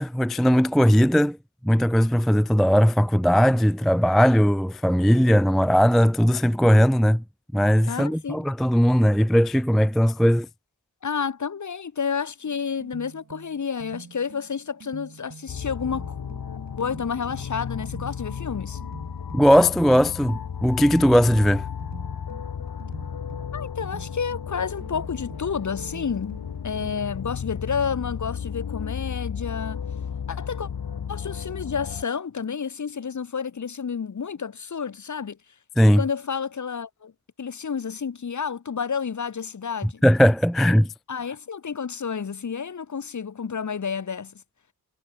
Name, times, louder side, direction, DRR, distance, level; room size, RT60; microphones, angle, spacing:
voice 1, 0.0-1.4 1.6-7.2 7.5-10.5 19.3-21.6 35.8-36.0 40.0-40.9, equal, ahead, 0.3 m, -19 dB
voice 2, 7.9-8.5 11.0-16.2 16.8-18.8 23.5-29.8 30.3-30.7 31.1-35.4 36.0-37.1 37.4-40.0 41.1-44.4, left 6 dB, 45° left, 1.7 m, -30 dB
sound 1, 12.4-27.3, right 6 dB, 45° right, 1.9 m, -47 dB
sound 2, 15.5-32.0, left 7 dB, 65° left, 3.2 m, -34 dB
wide cardioid pair, 95°, 39 cm